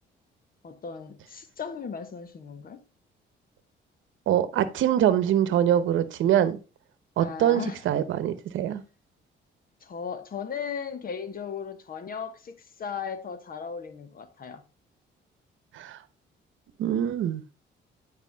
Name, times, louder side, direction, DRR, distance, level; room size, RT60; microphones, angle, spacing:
voice 1, 0.6-2.8 7.2-7.8 8.7-8.8 9.8-14.6, left 6 dB, 45° left, 1.2 m, -36 dB
voice 2, 4.3-6.6 7.2-8.8 15.7-16.0 16.8-17.4, right 10 dB, 75° right, 0.9 m, -24 dB
9.2 x 4.9 x 3.5 m
cardioid pair, 90°, 20 cm